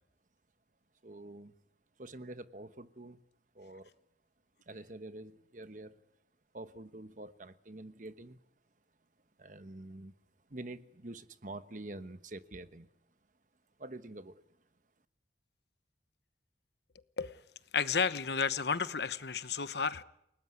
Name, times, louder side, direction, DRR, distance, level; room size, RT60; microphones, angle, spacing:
voice 1, 1.0-1.5 2.0-3.2 3.5-3.9 4.7-6.0 6.5-8.4 9.4-10.1 10.5-12.9 13.8-14.4, right 2 dB, 45° right, 1.1 m, -46 dB
voice 2, 17.7-20.0, left 6 dB, 70° left, 1.0 m, -32 dB
29.0 x 18.5 x 9.6 m
head